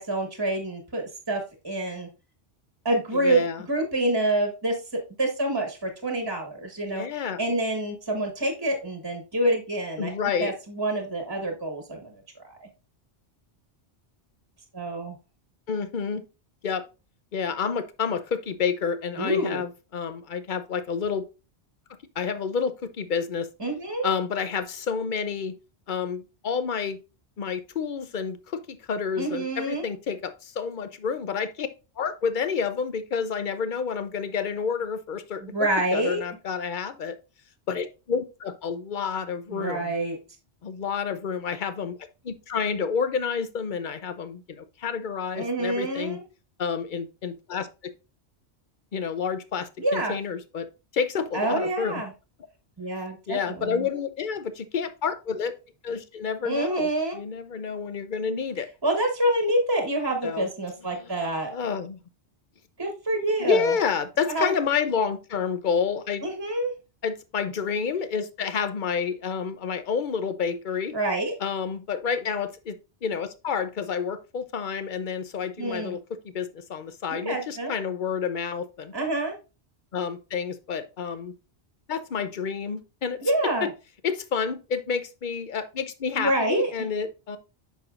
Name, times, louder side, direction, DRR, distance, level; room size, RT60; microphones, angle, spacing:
voice 1, 0.0-2.1 2.8-7.0 7.4-10.1 10.4-12.7 14.7-15.1 19.2-19.6 23.6-24.1 29.2-29.8 35.4-36.2 39.5-40.2 45.3-46.2 49.8-50.2 51.3-52.1 52.8-53.8 56.4-57.2 58.8-61.5 62.8-63.7 64.3-64.5 66.2-66.7 70.9-71.3 75.6-76.0 77.1-77.7 78.9-79.3 83.2-83.7 86.2-86.7, right 1 dB, 20° right, 1.4 m, -27 dB
voice 2, 3.1-3.6 6.9-7.4 10.0-10.5 15.7-16.2 16.6-16.8 17.3-21.3 22.2-23.5 24.0-25.5 25.9-27.0 27.4-31.7 32.0-35.4 35.9-37.2 37.7-39.9 40.6-42.0 42.2-46.2 46.6-47.9 48.9-50.7 50.9-52.0 53.3-55.5 55.8-58.7 60.2-60.5 60.9-61.1 61.5-62.0 63.4-66.3 67.0-71.0 71.4-78.9 79.9-81.3 81.9-83.7 84.0-87.4, left 6 dB, 50° left, 0.8 m, -29 dB
8.1 x 6.2 x 2.5 m
omnidirectional pair, 1.1 m